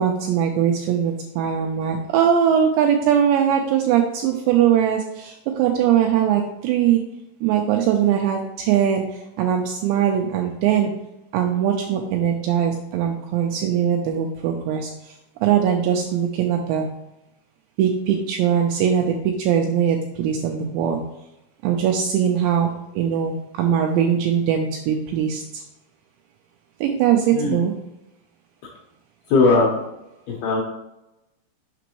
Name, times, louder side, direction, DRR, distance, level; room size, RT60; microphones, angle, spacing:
voice 1, 0.0-7.0 7.4-10.9 11.3-16.9 17.8-21.0 21.6-25.6 26.8-27.7, right 9 dB, 85° right, 2 dB, 2.5 m, -21 dB
voice 2, 29.3-29.8 30.3-30.6, left 3 dB, 75° left, -2 dB, 2.4 m, -18 dB
6.9 x 5.9 x 3.0 m, 0.89 s
omnidirectional pair, 5.6 m